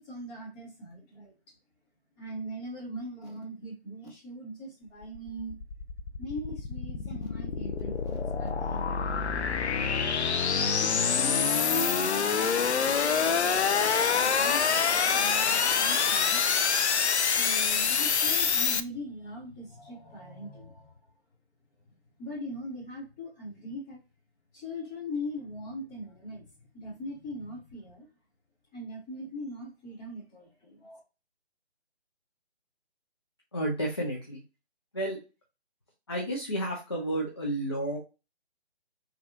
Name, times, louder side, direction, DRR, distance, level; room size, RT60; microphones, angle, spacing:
voice 1, 0.0-1.3 2.2-5.6 6.2-9.4 10.4-13.0 14.1-16.5 17.2-20.9 22.2-24.0 24.5-26.5 26.7-28.1 28.7-31.0, left 1 dB, 10° left, -7 dB, 0.9 m, -41 dB
sound 1, 5.0-18.8, left 6 dB, 75° left, 0.5 m, -26 dB
voice 2, 33.5-34.4 34.9-35.2 36.1-38.0, right 1 dB, 25° left, -3 dB, 0.5 m, -31 dB
3.4 x 2.3 x 2.6 m, 0.30 s
figure-of-eight pair, 145°, 34 cm